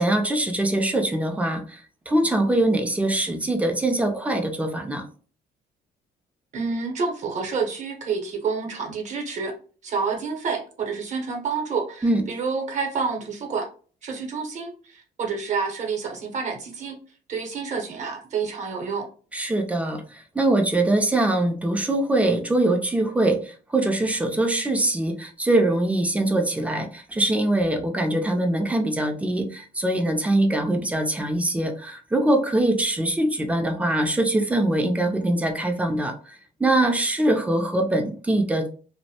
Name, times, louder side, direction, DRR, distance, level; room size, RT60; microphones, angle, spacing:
voice 1, 0.0-5.0 12.0-12.2 19.3-38.7, right 1 dB, 10° right, 4 dB, 0.5 m, -23 dB
voice 2, 6.5-9.5 9.8-13.7 14.0-17.0 17.3-19.1, right 5 dB, 45° right, 3 dB, 0.8 m, -28 dB
2.6 x 2.1 x 2.8 m, 0.40 s
cardioid pair, 110°, 17 cm